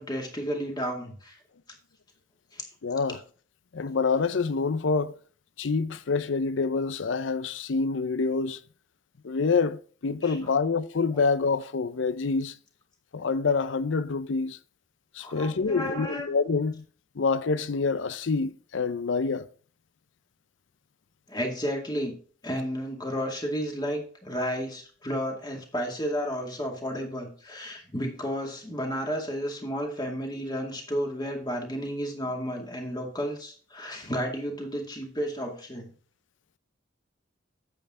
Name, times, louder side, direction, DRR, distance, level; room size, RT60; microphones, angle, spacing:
voice 1, 0.0-1.4 2.5-2.6 10.2-10.4 15.2-16.3 21.3-22.2 22.4-35.9, equal, 20° left, 2.2 m, -32 dB
voice 2, 2.8-3.2 3.7-5.1 5.6-8.6 9.2-12.5 13.1-14.6 15.1-16.8 17.2-19.5, left 4 dB, 75° left, 0.6 m, -26 dB
8.9 x 7.9 x 3.7 m
head